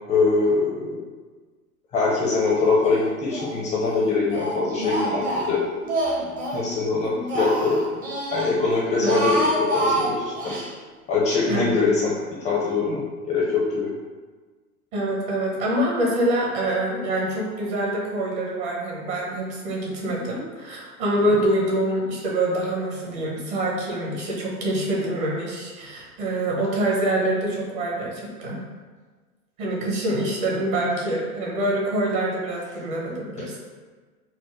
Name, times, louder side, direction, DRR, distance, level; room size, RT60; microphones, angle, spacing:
voice 1, 0.1-1.0 1.9-5.6 6.5-7.8 8.3-10.6 11.1-12.1 12.4-13.0 13.3-13.9, left 4 dB, 15° left, -4 dB, 0.5 m, -23 dB
Speech, 2.8-3.5 3.8-6.7 7.0-8.5 8.9-10.7, right 1 dB, 20° right, 0.7 m, -27 dB
voice 2, 14.9-28.6 29.6-33.6, right 1 dB, 45° right, -3 dB, 1.2 m, -25 dB
4.4 x 2.1 x 4.6 m, 1.4 s
figure-of-eight pair, 95°, 45 cm